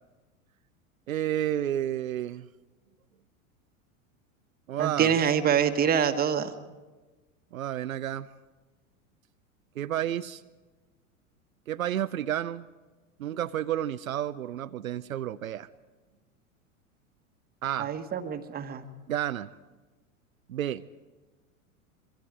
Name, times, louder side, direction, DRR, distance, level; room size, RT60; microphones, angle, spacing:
voice 1, 1.1-2.5 4.7-5.1 7.5-8.3 9.8-10.4 11.7-12.6 13.2-15.7 17.6-17.9 19.1-19.5 20.5-20.8, right 11 dB, 70° right, 11 dB, 0.6 m, -31 dB
voice 2, 4.8-6.5 17.8-18.9, right 8 dB, 20° right, 8 dB, 1.4 m, -25 dB
26.5 x 23.0 x 4.9 m, 1.2 s
figure-of-eight pair, 85°, 42 cm